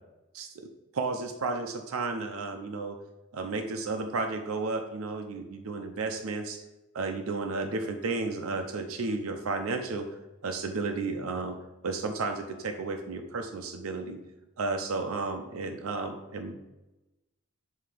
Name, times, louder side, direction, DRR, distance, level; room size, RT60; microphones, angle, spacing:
voice 1, 0.3-0.7 0.9-3.0 3.3-6.6 6.9-10.1 10.4-11.6 11.8-14.2 14.6-16.7, right 3 dB, 85° right, 5 dB, 0.6 m, -33 dB
7.6 x 2.8 x 4.9 m, 1.0 s
head